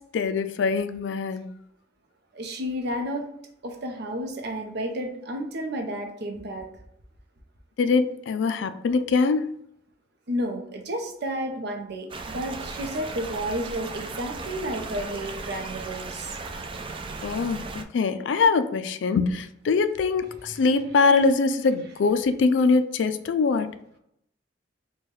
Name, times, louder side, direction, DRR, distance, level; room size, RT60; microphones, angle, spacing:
voice 1, 0.0-1.5 7.8-9.6 17.2-23.7, left 4 dB, 70° left, 10 dB, 0.3 m, -23 dB
voice 2, 2.3-3.3 3.6-6.7 10.3-16.4 20.5-20.6, equal, 60° right, 4 dB, 0.7 m, -31 dB
sound 1, 12.1-17.8, right 3 dB, 30° right, 0.3 m, -36 dB
4.5 x 2.3 x 3.1 m, 0.75 s
head